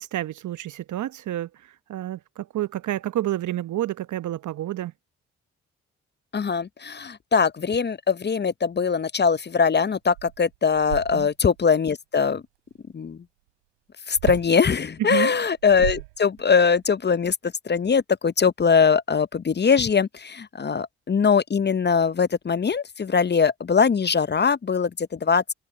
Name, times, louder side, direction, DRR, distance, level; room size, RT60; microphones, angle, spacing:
voice 1, 0.0-1.5 1.9-4.9 11.1-11.3 15.0-15.3, right 13 dB, 60° right, 1.0 m, -29 dB
voice 2, 6.3-12.4 12.9-13.2 14.1-17.4 17.7-25.4, left 6 dB, 30° left, 0.8 m, -21 dB
sound 1, 9.7-9.8 10.1-11.6 14.1-14.6 15.4-16.7, right 25 dB, 85° right, 4.7 m, -34 dB
hypercardioid pair, 40°, 33 cm